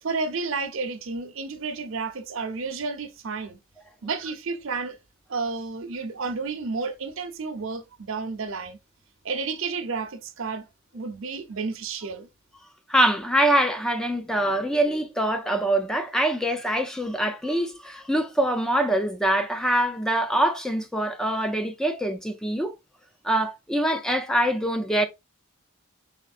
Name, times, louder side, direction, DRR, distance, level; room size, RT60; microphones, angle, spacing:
voice 1, 0.0-3.6 4.0-5.0 5.3-8.8 9.2-10.7 10.9-12.3, right 4 dB, 65° right, 0.8 m, -31 dB
voice 2, 12.9-22.7 23.2-25.1, right 1 dB, 5° left, 0.4 m, -24 dB
5.0 x 4.1 x 2.5 m
head